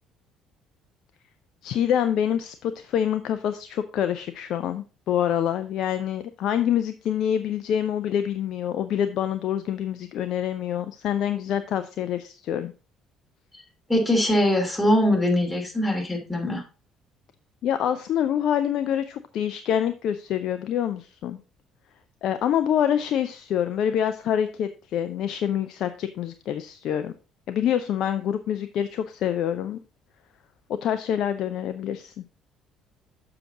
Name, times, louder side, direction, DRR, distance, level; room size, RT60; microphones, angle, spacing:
voice 1, 1.6-12.7 17.6-21.4 22.2-27.1 27.5-29.8 30.8-32.2, left 9 dB, 60° left, 10 dB, 0.4 m, -26 dB
voice 2, 13.9-16.6, left 1 dB, 10° left, 0 dB, 2.8 m, -22 dB
6.9 x 5.8 x 3.8 m, 0.34 s
figure-of-eight pair, 50°, 0 cm